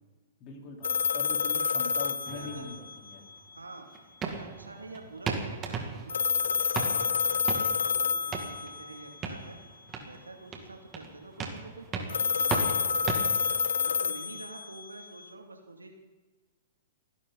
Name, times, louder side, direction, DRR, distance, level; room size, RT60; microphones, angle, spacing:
voice 1, 0.4-3.3, left 5 dB, 35° left, 0 dB, 3.9 m, -42 dB
sound 1, 0.8-3.1 6.1-9.0 12.1-15.0, left 7 dB, 70° left, 0.7 m, -28 dB
sound 2, 2.2-13.8, right 5 dB, 25° right, 2.4 m, -38 dB
voice 2, 2.3-2.7 3.5-3.9 4.2-9.6 10.1-16.0, right 2 dB, 85° right, 3 dB, 2.5 m, -47 dB
30.0 x 11.0 x 4.1 m, 1.3 s
figure-of-eight pair, 110°, 0 cm